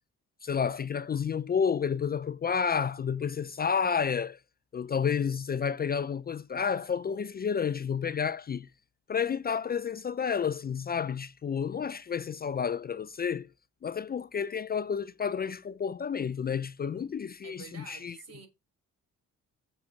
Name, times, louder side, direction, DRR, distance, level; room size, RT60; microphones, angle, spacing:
voice 1, 0.4-4.4 4.7-8.7 9.1-13.5 13.8-18.2, left 7 dB, 30° left, 0.5 m, -30 dB
voice 2, 17.4-18.5, right 5 dB, 55° right, 3.9 m, -48 dB
6.6 x 4.9 x 6.9 m
cardioid pair, 90°, 30 cm